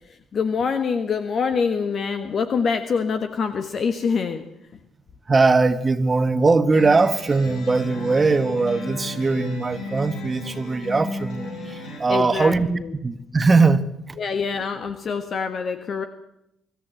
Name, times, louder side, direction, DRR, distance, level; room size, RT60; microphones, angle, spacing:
voice 1, 0.0-4.5 4.7-4.8 12.1-12.9 14.2-16.1, left 5 dB, 50° left, 8 dB, 1.5 m, -25 dB
voice 2, 5.3-12.7 13.0-14.2, right 3 dB, 30° right, 12 dB, 1.6 m, -20 dB
sound 1, 6.7-12.0, left 2 dB, 70° left, 6.8 m, -34 dB
25.0 x 13.5 x 7.9 m, 0.81 s
hypercardioid pair, 45°, 0 cm